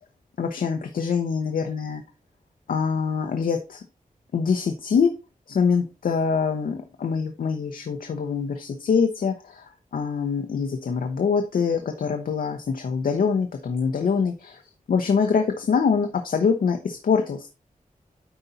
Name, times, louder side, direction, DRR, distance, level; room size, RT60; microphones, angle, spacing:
voice 1, 0.4-2.0 2.7-3.8 4.3-5.1 5.5-14.6 14.9-17.5, left 5 dB, 85° left, 5 dB, 0.8 m, -24 dB
9.6 x 4.1 x 4.0 m, 0.29 s
wide cardioid pair, 170°, 14 cm